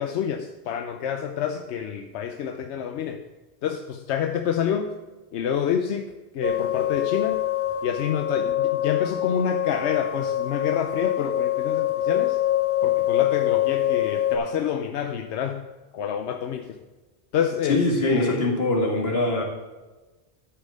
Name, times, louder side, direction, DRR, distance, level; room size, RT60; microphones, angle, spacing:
voice 1, 0.0-3.2 3.6-4.9 5.3-6.1 6.3-7.4 7.8-12.4 12.8-15.7 15.9-16.8 17.3-18.5, left 8 dB, 90° left, 6 dB, 0.9 m, -28 dB
sound 1, 6.4-14.4, left 12 dB, 10° left, 1.4 m, -25 dB
voice 2, 17.7-19.4, left 1 dB, 65° left, -1 dB, 2.3 m, -23 dB
11.5 x 5.3 x 6.3 m, 1.2 s
omnidirectional pair, 1.1 m